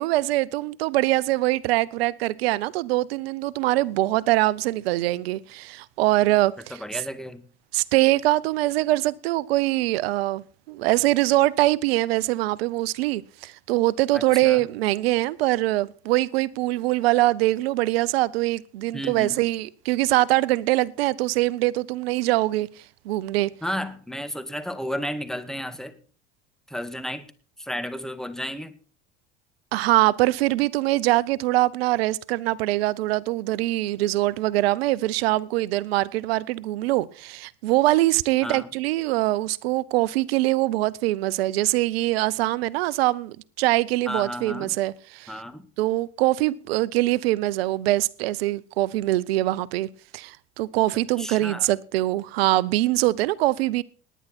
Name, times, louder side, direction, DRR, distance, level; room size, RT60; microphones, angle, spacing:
voice 1, 0.0-6.7 7.7-22.7 23.1-23.5 29.7-45.3 45.8-49.9 50.1-53.8, right 17 dB, 80° right, 0.6 m, -23 dB
voice 2, 6.7-7.4 14.1-14.6 18.9-19.4 23.6-26.0 26.7-27.3 27.6-28.7 38.4-38.7 44.1-44.7 45.3-45.7 51.2-51.7, equal, ahead, 1.9 m, -33 dB
18.5 x 10.0 x 4.2 m
hypercardioid pair, 75°, 30 cm